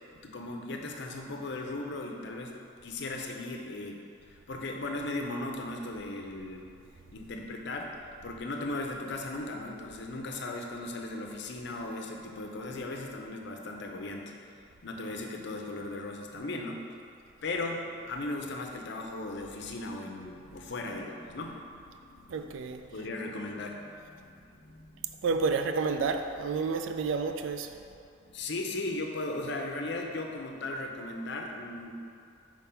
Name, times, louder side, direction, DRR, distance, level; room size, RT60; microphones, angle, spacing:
voice 1, 0.2-4.0 4.5-6.7 7.1-7.9 8.2-16.9 17.4-25.1 28.2-31.9, left 2 dB, 60° left, 2 dB, 0.6 m, -37 dB
voice 2, 22.3-22.8 25.2-27.7, right 4 dB, 70° right, 7 dB, 0.3 m, -30 dB
4.6 x 3.8 x 5.7 m, 2.4 s
head